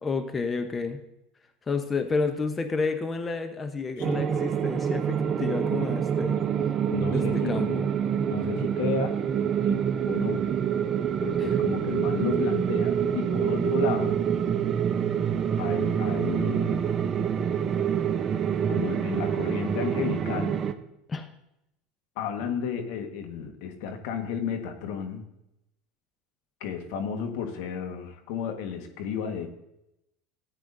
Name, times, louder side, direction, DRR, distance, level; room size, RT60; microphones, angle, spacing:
voice 1, 0.0-1.0 1.7-6.5 7.1-7.9 11.4-11.5 21.1-21.3, left 4 dB, 25° left, 7 dB, 0.9 m, -30 dB
sound 1, 4.0-20.7, right 8 dB, 35° right, 0.8 m, -26 dB
voice 2, 6.6-7.8 8.2-9.2 9.6-10.4 11.2-14.2 15.6-16.8 18.7-20.6 22.1-25.2 26.6-29.5, left 7 dB, 70° left, 5 dB, 1.5 m, -33 dB
15.0 x 9.2 x 2.7 m, 0.86 s
hypercardioid pair, 85°, 0 cm